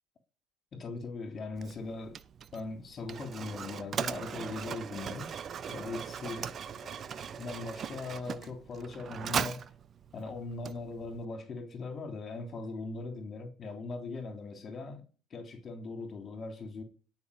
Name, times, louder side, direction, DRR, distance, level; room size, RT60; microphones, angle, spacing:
voice 1, 0.7-2.2 2.5-5.3 5.7-7.1 7.4-9.6 10.1-15.0 15.3-16.8, left 3 dB, 40° left, 3.3 m, -40 dB
Mechanisms, 1.6-11.2, right 7 dB, 40° right, 0.8 m, -39 dB
18.0 x 6.2 x 9.9 m
supercardioid pair, 85°, 0 cm